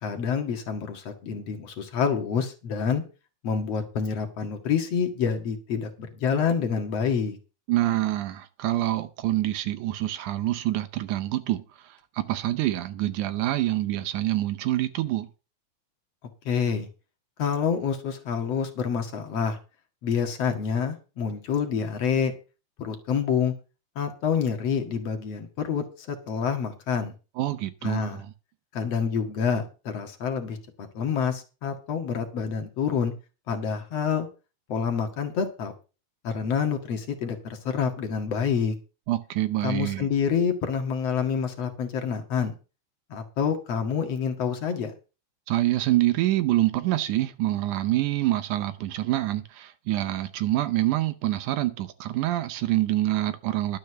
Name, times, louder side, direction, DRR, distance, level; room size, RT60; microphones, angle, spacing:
voice 1, 0.0-3.0 3.4-7.4 16.5-16.9 17.4-19.6 20.0-22.3 22.8-23.5 24.0-27.1 27.8-28.2 28.7-30.6 30.9-33.1 33.5-34.3 34.7-35.7 36.2-38.8 39.6-42.5 43.1-44.9, left 6 dB, 55° left, 2.8 m, -27 dB
voice 2, 7.7-15.3 27.4-28.3 39.1-40.1 45.5-53.8, right 15 dB, 80° right, 2.2 m, -26 dB
12.0 x 6.3 x 6.9 m
omnidirectional pair, 3.6 m